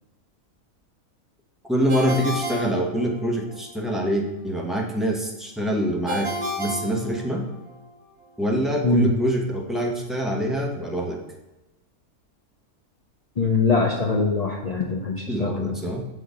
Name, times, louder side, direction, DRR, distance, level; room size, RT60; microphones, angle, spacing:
voice 1, 1.7-7.5 8.4-11.2 15.3-16.0, equal, ahead, 0 dB, 0.7 m, -25 dB
Ringtone, 1.9-3.6 6.1-7.7, equal, 75° right, 1.8 m, -31 dB
voice 2, 13.4-15.8, left 3 dB, 70° left, 1 dB, 0.3 m, -22 dB
6.5 x 4.2 x 5.1 m, 0.98 s
omnidirectional pair, 1.5 m